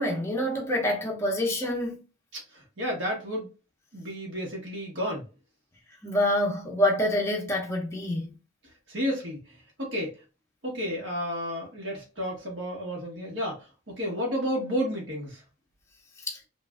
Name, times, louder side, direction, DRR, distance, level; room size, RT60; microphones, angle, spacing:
voice 1, 0.0-2.0 6.0-8.3 16.3-16.4, left 1 dB, 15° left, 0.6 m, -26 dB
voice 2, 2.3-3.5 3.9-5.3 8.9-9.4 9.8-10.2 10.6-15.4, equal, 70° right, 1.1 m, -31 dB
3.1 x 2.4 x 2.3 m
head